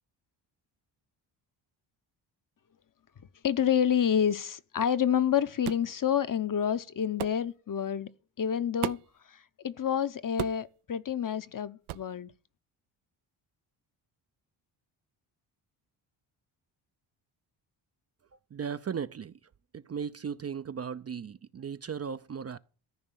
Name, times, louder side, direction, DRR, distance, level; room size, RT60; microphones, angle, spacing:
voice 1, 3.4-8.1 8.4-9.0 9.3-12.3, left 8 dB, 40° left, 0.9 m, -28 dB
sound 1, 5.6-5.9 7.2-7.4 8.8-9.2 10.4-10.7 11.9-12.1, right 15 dB, 80° right, 0.7 m, -35 dB
voice 2, 18.5-19.3 19.7-22.6, right 7 dB, 30° right, 0.5 m, -36 dB
14.0 x 5.3 x 8.9 m
supercardioid pair, 55°, 49 cm